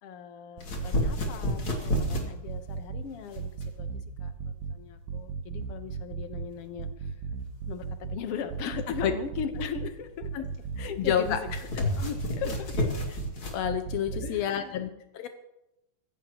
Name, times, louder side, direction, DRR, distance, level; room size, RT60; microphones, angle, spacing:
voice 1, 0.0-3.9 4.2-7.2 7.7-10.5 10.8-11.6 12.4-12.9 14.1-15.0, left 7 dB, 60° left, 7 dB, 1.6 m, -39 dB
sound 1, 0.6-13.6, left 1 dB, 40° left, 3.1 m, -33 dB
sound 2, 0.6-1.3 1.6-3.0 3.4-4.7 5.1-6.5 6.8-8.2 8.5-9.9 10.2-11.6 11.9-13.3 13.6-14.3, right 5 dB, 75° right, 2.7 m, -35 dB
voice 2, 11.0-11.4 12.0-12.2 12.8-12.9 13.5-15.3, left 9 dB, 85° left, 7 dB, 1.5 m, -29 dB
25.0 x 15.0 x 3.1 m, 0.91 s
omnidirectional pair, 4.0 m